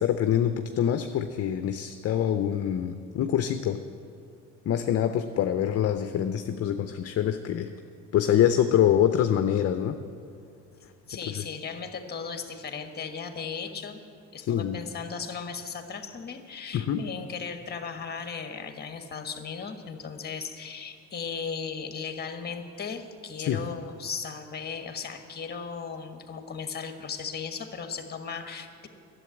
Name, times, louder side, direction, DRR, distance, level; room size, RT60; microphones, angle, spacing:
voice 1, 0.0-3.8 4.7-7.7 8.1-10.0 14.4-14.8 16.7-17.0 23.5-23.6, left 10 dB, 45° left, 8 dB, 0.6 m, -25 dB
voice 2, 11.1-14.0 14.3-28.9, left 6 dB, 30° left, 6 dB, 1.4 m, -36 dB
11.0 x 7.8 x 9.7 m, 2.4 s
supercardioid pair, 85°, 33 cm